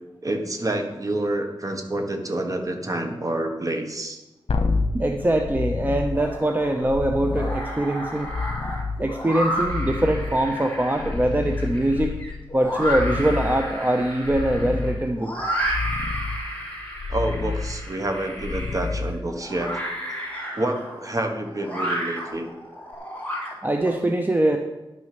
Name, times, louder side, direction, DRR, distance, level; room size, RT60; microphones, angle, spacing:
voice 1, 0.2-4.2 4.9-5.0 17.1-19.8 20.5-22.5, right 1 dB, 40° right, 5 dB, 1.3 m, -28 dB
sound 1, 4.5-19.8 22.9-23.0, left 3 dB, 80° left, 0.9 m, -30 dB
voice 2, 5.0-8.3 9.0-12.1 12.5-15.3 23.6-24.6, right 1 dB, 20° right, 4 dB, 0.7 m, -23 dB
sound 2, 6.1-6.8 7.2-23.9, equal, 15° left, 3.3 m, -32 dB
10.5 x 6.1 x 6.0 m, 1.0 s
wide cardioid pair, 90°, 9 cm